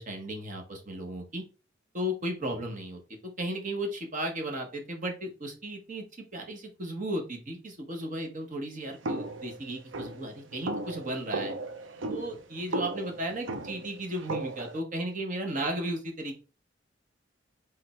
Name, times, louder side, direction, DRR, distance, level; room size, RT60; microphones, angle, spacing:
voice 1, 0.0-1.4 1.9-3.0 3.4-6.0 6.3-11.5 12.1-16.4, right 1 dB, 45° right, 2 dB, 1.3 m, -35 dB
sound 1, 9.0-14.8, right 2 dB, 75° right, 0.7 m, -36 dB
3.7 x 3.4 x 4.2 m, 0.33 s
head